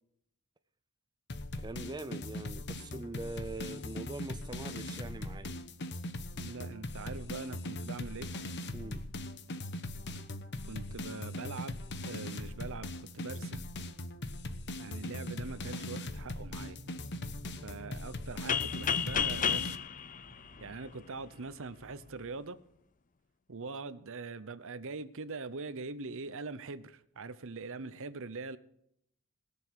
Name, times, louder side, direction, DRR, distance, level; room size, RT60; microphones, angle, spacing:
sound 1, 1.3-19.8, left 1 dB, 50° left, 1.1 m, -40 dB
voice 1, 1.6-5.6 8.7-9.0, right 2 dB, 20° right, 0.6 m, -43 dB
voice 2, 6.3-8.3 10.7-11.8 12.0-13.7 14.8-16.8 17.6-19.7 20.6-22.6 23.5-28.6, right 3 dB, 60° right, 0.9 m, -42 dB
sound 2, 16.3-22.2, equal, 85° left, 3.3 m, -57 dB
sound 3, 18.5-21.2, left 7 dB, 35° left, 0.6 m, -32 dB
21.0 x 7.1 x 6.4 m
head